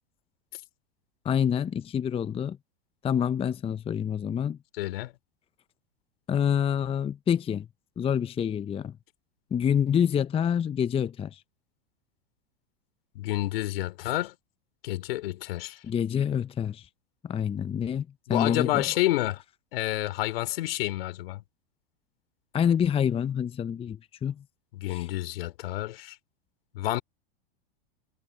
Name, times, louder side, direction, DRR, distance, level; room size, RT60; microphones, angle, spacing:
voice 1, 1.2-2.6 3.0-4.6 6.3-7.7 8.0-9.0 9.5-11.4 15.9-16.9 17.2-18.8 22.5-24.4 24.9-25.1, left 8 dB, 20° left, 0.7 m, -27 dB
voice 2, 4.8-5.1 13.1-14.3 14.8-15.8 18.3-19.4 19.7-21.4 24.7-26.2 26.7-27.0, left 16 dB, 70° left, 3.3 m, -29 dB
hypercardioid pair, 110°, 30 cm